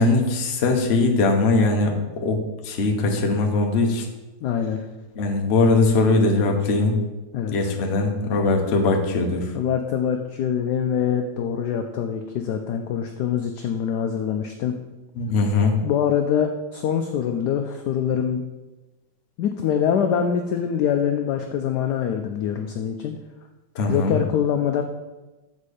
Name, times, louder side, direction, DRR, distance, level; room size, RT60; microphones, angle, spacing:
voice 1, 0.0-4.1 5.2-7.0 7.5-9.5 15.2-15.8 23.7-24.2, left 3 dB, 50° left, 3 dB, 0.8 m, -21 dB
voice 2, 4.4-4.8 7.3-7.7 9.5-14.8 15.8-18.4 19.4-23.1 23.9-24.8, left 8 dB, 75° left, 5 dB, 1.0 m, -24 dB
7.2 x 4.3 x 4.9 m, 1.1 s
omnidirectional pair, 2.1 m